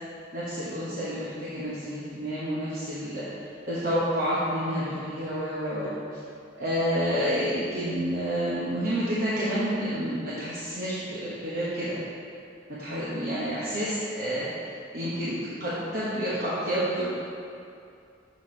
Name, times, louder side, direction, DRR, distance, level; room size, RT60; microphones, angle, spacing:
voice 1, 0.3-5.9 6.6-12.0 12.8-17.1, equal, 50° right, -9 dB, 1.0 m, -29 dB
6.9 x 4.2 x 4.5 m, 2.5 s
head